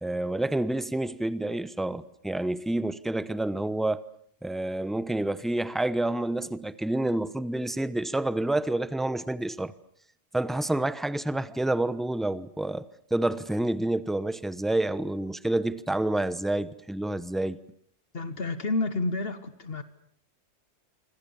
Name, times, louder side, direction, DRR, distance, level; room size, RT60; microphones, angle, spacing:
voice 1, 0.0-4.0 4.4-9.7 10.3-17.6, right 1 dB, ahead, 0.8 m, -28 dB
voice 2, 18.1-19.8, left 2 dB, 60° left, 1.5 m, -30 dB
27.0 x 25.0 x 7.1 m
omnidirectional pair, 1.2 m